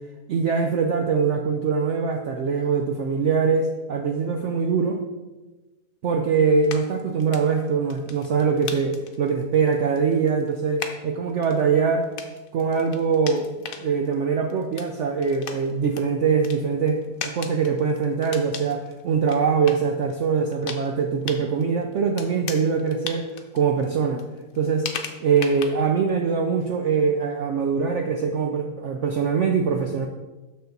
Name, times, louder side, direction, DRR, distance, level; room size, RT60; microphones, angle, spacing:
voice 1, 0.3-5.0 6.0-12.1 12.5-13.5 13.8-24.2 24.5-24.9 25.2-30.1, right 5 dB, 70° right, 3 dB, 0.7 m, -23 dB
sound 1, 6.6-26.1, left 7 dB, 65° left, 1.0 m, -39 dB
6.6 x 6.4 x 4.0 m, 1.2 s
omnidirectional pair, 1.7 m